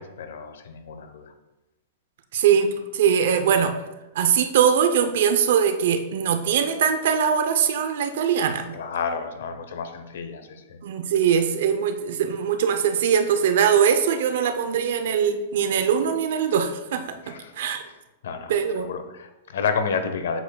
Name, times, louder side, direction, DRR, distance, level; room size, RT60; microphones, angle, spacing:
voice 1, 0.0-1.3 8.7-10.8 17.2-17.5 17.8-17.9 18.2-20.4, left 5 dB, 80° left, 8 dB, 0.8 m, -30 dB
voice 2, 2.3-3.8 4.1-8.8 10.8-17.8 18.5-18.9, right 7 dB, 60° right, 8 dB, 0.5 m, -22 dB
7.8 x 7.0 x 2.2 m, 1.0 s
supercardioid pair, 165°, 0 cm